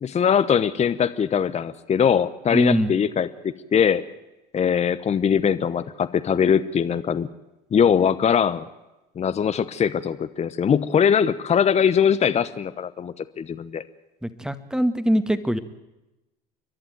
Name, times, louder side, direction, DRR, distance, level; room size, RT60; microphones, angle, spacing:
voice 1, 0.0-4.0 4.5-7.3 7.7-8.7 9.2-13.8, left 7 dB, 35° left, 13 dB, 1.0 m, -21 dB
voice 2, 2.5-2.9 14.2-15.6, equal, 5° right, 11 dB, 1.8 m, -22 dB
29.5 x 11.5 x 9.3 m, 0.99 s
hypercardioid pair, 75°, 20 cm